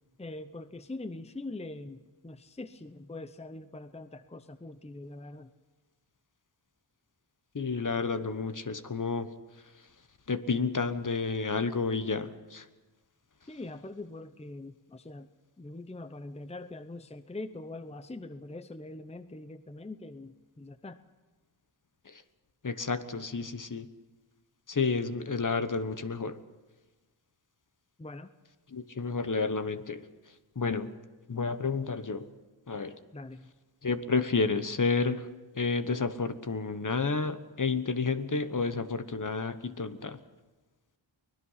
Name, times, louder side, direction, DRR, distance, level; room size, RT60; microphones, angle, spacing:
voice 1, 0.2-5.5 13.5-15.3 15.6-21.0 28.0-28.3 33.1-33.5, left 2 dB, 15° left, 11 dB, 0.8 m, -43 dB
voice 2, 7.5-9.3 10.3-12.6 22.1-22.2 22.6-23.9 24.7-26.4 28.7-30.0 30.6-30.9 31.3-32.3 32.7-32.9 33.8-35.3 35.5-40.2, left 4 dB, 40° left, 11 dB, 1.2 m, -30 dB
24.0 x 19.0 x 5.8 m, 1.2 s
cardioid pair, 60°, 46 cm